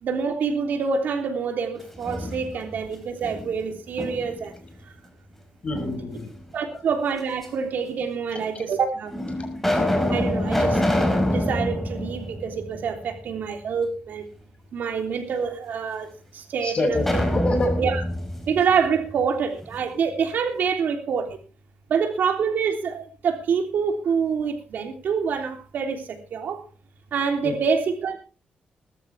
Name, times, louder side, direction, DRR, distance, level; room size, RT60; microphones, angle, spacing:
voice 1, 0.0-4.5 6.5-9.1 10.1-10.8 11.3-14.2 14.7-17.2 17.8-18.0 18.5-21.4 21.9-26.6 27.1-28.2, right 6 dB, 70° right, 3.3 m, -26 dB
sound 1, 1.8-2.8 3.2-4.5 5.7-6.5 7.4-7.5 8.4-8.5 9.1-13.2 13.5-13.6 16.9-19.7, left 1 dB, 5° left, 4.3 m, -26 dB
voice 2, 5.6-6.3 6.6-6.8 9.4-9.5 10.3-10.4 16.6-17.0 17.3-17.7 27.4-27.5, left 1 dB, 35° left, 6.1 m, -27 dB
20.0 x 13.0 x 3.4 m
cardioid pair, 110°, 3 cm